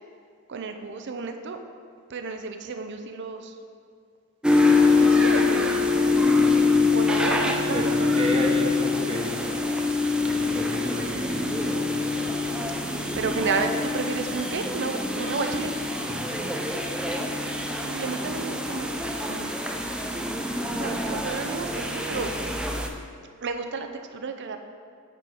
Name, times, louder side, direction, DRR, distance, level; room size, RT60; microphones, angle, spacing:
voice 1, 0.5-1.6 2.1-3.5 4.8-5.7 6.9-8.5 13.0-15.7 17.2-19.6 20.8-22.6 23.4-24.6, right 4 dB, 55° right, 7 dB, 0.5 m, -32 dB
sound 1, 4.4-22.9, left 3 dB, 5° right, 0.4 m, -24 dB
voice 2, 6.2-7.1 7.7-9.4 10.2-12.1 16.0-16.5, equal, 25° right, 0 dB, 1.0 m, -33 dB
8.5 x 4.6 x 4.7 m, 2.2 s
head